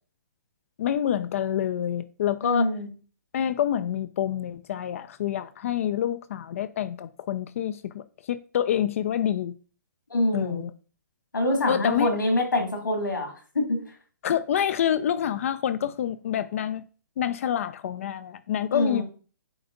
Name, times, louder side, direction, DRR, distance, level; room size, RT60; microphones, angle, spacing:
voice 1, 0.8-2.7 3.3-9.5 10.3-10.7 11.7-12.1 14.2-16.8 17.2-19.0, left 10 dB, 45° left, 0.4 m, -27 dB
voice 2, 2.4-2.9 10.1-10.6 11.3-13.9 18.7-19.0, left 1 dB, 80° left, 2.4 m, -25 dB
8.8 x 3.4 x 3.8 m
figure-of-eight pair, 130°, 10 cm